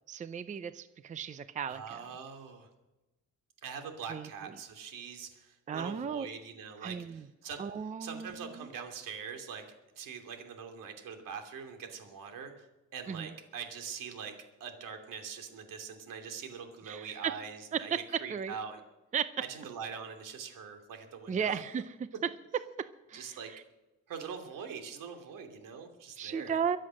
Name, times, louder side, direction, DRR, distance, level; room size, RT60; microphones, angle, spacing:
voice 1, 0.1-2.0 4.1-4.3 5.7-6.3 6.8-7.2 7.6-8.7 13.1-13.3 16.9-17.3 17.7-18.0 18.3-18.5 19.1-19.2 21.3-21.8 23.1-23.6 26.2-26.8, right 7 dB, 25° right, 13 dB, 0.5 m, -35 dB
voice 2, 1.6-2.7 3.6-7.6 8.0-9.6 9.9-12.7 12.9-14.3 14.6-17.9 18.2-18.8 19.5-21.6 23.1-23.5 24.1-26.6, right 6 dB, 80° right, 5 dB, 2.9 m, -43 dB
23.0 x 7.8 x 6.3 m, 1.0 s
cardioid pair, 150°, 32 cm